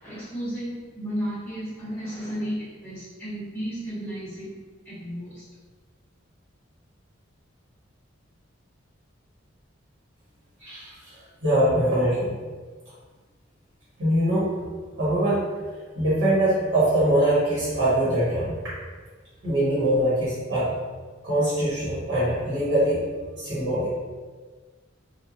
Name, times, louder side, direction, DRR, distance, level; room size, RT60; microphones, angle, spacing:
voice 1, 0.0-4.5 4.8-5.5, equal, 10° left, -16 dB, 0.8 m, -33 dB
voice 2, 10.6-12.4 14.0-14.5 15.0-15.4 15.9-18.6 19.4-20.7 21.2-23.0 23.4-23.9, right 1 dB, 60° right, -11 dB, 1.2 m, -23 dB
2.9 x 2.3 x 2.4 m, 1.4 s
head